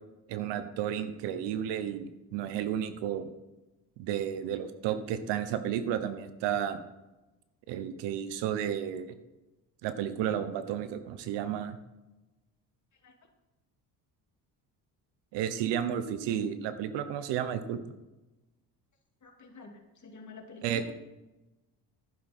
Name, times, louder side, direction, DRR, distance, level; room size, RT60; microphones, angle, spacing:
voice 1, 0.3-3.3 4.0-6.8 7.7-9.1 9.8-11.8 15.3-17.8 20.6-20.9, right 9 dB, 85° right, 11 dB, 1.0 m, -32 dB
voice 2, 19.2-20.9, left 4 dB, 45° left, 2 dB, 2.6 m, -48 dB
11.0 x 9.7 x 4.3 m, 1.1 s
supercardioid pair, 75°, 42 cm